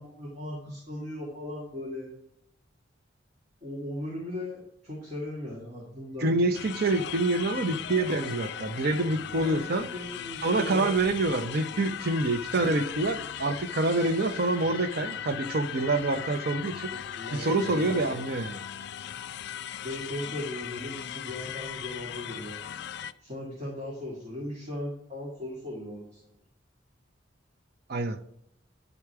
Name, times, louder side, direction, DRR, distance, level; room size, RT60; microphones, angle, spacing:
voice 1, 0.0-2.1 3.6-6.3 9.4-10.9 16.9-18.1 19.8-22.6 23.2-26.2, left 1 dB, 35° right, 2.1 m, -38 dB
voice 2, 6.2-9.9 10.4-16.9 17.3-18.6 27.9-28.2, right 2 dB, 55° right, 0.6 m, -27 dB
sound 1, 6.5-23.1, left 9 dB, 60° left, 0.4 m, -38 dB
9.9 x 4.8 x 4.6 m
head